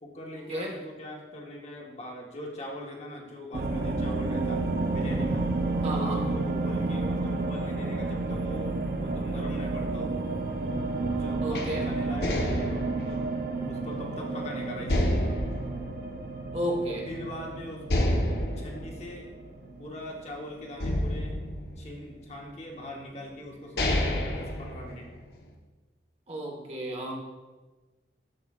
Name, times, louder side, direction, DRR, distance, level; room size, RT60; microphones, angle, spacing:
voice 1, 0.0-4.6 4.9-5.4 5.9-10.1 11.1-13.3 13.6-15.2 17.0-18.2 18.6-19.3 19.8-21.4 21.8-25.1, left 1 dB, 35° left, -1 dB, 1.0 m, -41 dB
sound 1, 3.5-20.4, right 3 dB, 55° right, 0.6 m, -31 dB
voice 2, 5.8-6.2 11.4-11.9 16.5-17.1 26.3-27.1, right 1 dB, 35° right, -1 dB, 1.2 m, -32 dB
sound 2, 11.5-14.4 14.9-16.8 17.2-17.3 17.9-20.2 20.8-22.4 23.1-23.2 23.6-25.4, left 1 dB, 60° left, 1.0 m, -30 dB
13.0 x 4.8 x 2.4 m, 1.2 s
head